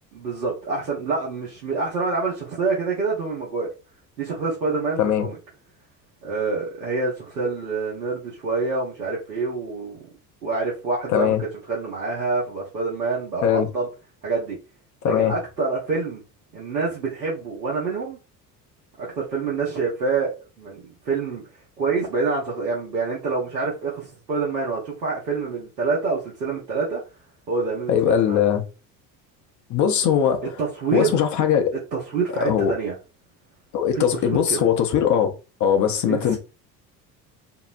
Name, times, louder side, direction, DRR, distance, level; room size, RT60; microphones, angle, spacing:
voice 1, 0.1-3.7 4.2-5.4 6.2-10.0 10.4-13.9 14.2-14.6 15.0-16.2 16.5-18.2 19.0-21.4 21.8-27.0 27.5-28.4 30.4-31.1 31.9-32.9 33.9-34.6 36.1-36.4, right 4 dB, 85° right, 0.9 m, -27 dB
voice 2, 11.1-11.4 13.4-13.7 15.0-15.3 27.9-28.6 29.7-30.4 30.9-31.7 32.4-32.7 33.7-35.3 35.6-36.4, left 8 dB, 40° left, 0.6 m, -20 dB
2.7 x 2.0 x 2.5 m
hypercardioid pair, 65°, 50 cm